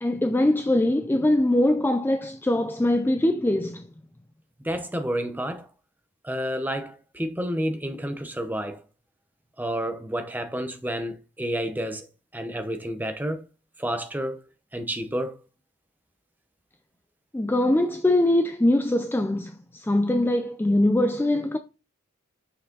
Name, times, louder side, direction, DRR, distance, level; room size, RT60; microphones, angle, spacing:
voice 1, 0.0-3.8 17.3-21.6, left 1 dB, 10° left, 0.3 m, -22 dB
voice 2, 4.6-5.7 6.2-8.8 9.6-12.1 12.3-13.4 13.8-14.4 14.7-15.3, equal, 10° right, 0.7 m, -30 dB
6.2 x 4.7 x 3.8 m
head